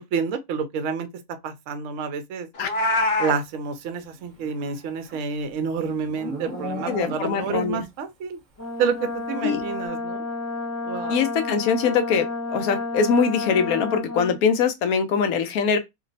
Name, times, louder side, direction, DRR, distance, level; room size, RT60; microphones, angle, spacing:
voice 1, 0.1-1.1 1.4-2.5 3.2-8.4 8.8-10.3 10.9-11.1, right 6 dB, 65° right, 0.9 m, -28 dB
Meow, 2.5-3.4, left 2 dB, 50° left, 0.9 m, -23 dB
Livestock farm animals working animals, 4.4-7.6, equal, 35° right, 0.9 m, -36 dB
voice 2, 6.9-7.8 9.4-9.6 11.1-15.8, left 6 dB, 80° left, 1.1 m, -22 dB
Brass instrument, 8.6-14.4, left 3 dB, 15° left, 0.6 m, -31 dB
2.9 x 2.0 x 3.9 m
omnidirectional pair, 1.5 m